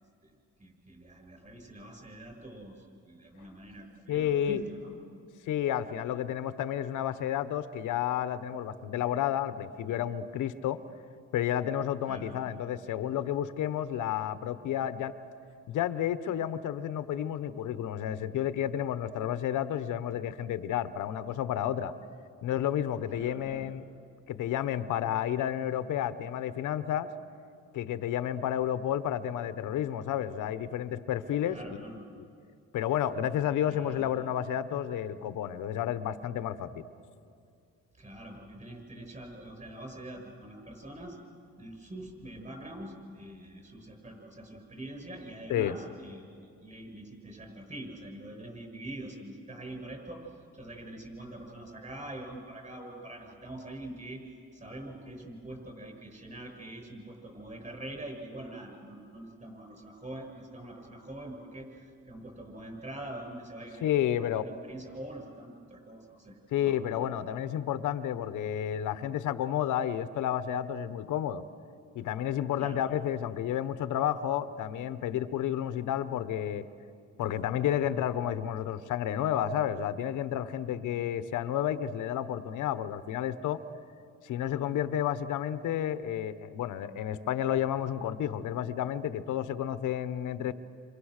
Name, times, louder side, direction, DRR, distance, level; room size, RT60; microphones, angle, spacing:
voice 1, 0.2-5.0 12.1-12.3 23.1-23.7 31.4-32.0 33.7-34.1 37.9-41.2 41.6-54.2 54.5-63.9 64.2-66.8 72.6-72.8, right 1 dB, 25° right, 3 dB, 7.1 m, -44 dB
voice 2, 4.1-4.6 5.5-10.8 11.3-15.1 15.7-21.9 22.4-23.8 24.3-27.1 27.7-31.6 32.7-36.8 45.5-45.7 63.8-64.4 66.5-71.4 71.9-76.6 77.2-83.6 84.2-90.5, left 10 dB, 80° left, 12 dB, 1.0 m, -31 dB
28.5 x 26.5 x 6.5 m, 2.4 s
cardioid pair, 90°, 30 cm